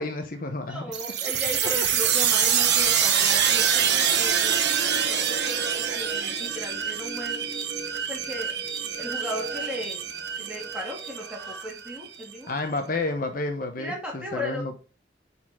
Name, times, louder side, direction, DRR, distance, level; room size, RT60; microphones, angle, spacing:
voice 1, 0.0-0.8 1.8-1.9 12.5-14.8, left 2 dB, 50° left, 0.9 m, -30 dB
voice 2, 0.7-7.4 8.1-8.5 9.0-10.1 10.4-12.6 13.8-14.8, equal, 5° right, 2.4 m, -36 dB
sound 1, 0.9-12.3, right 8 dB, 65° right, 1.1 m, -25 dB
9.1 x 4.3 x 3.7 m
head